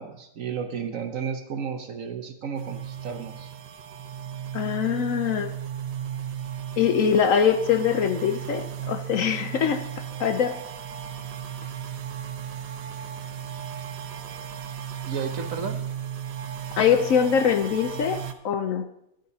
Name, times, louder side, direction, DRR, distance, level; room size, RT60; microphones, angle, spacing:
voice 1, 0.0-3.5 15.1-15.9, right 6 dB, 55° right, 6 dB, 1.1 m, -33 dB
sound 1, 2.6-18.3, right 8 dB, 70° right, 1.2 m, -35 dB
voice 2, 4.5-5.5 6.8-10.6 16.7-18.9, left 7 dB, 65° left, 8 dB, 0.8 m, -23 dB
14.0 x 10.5 x 2.8 m, 0.80 s
omnidirectional pair, 1.9 m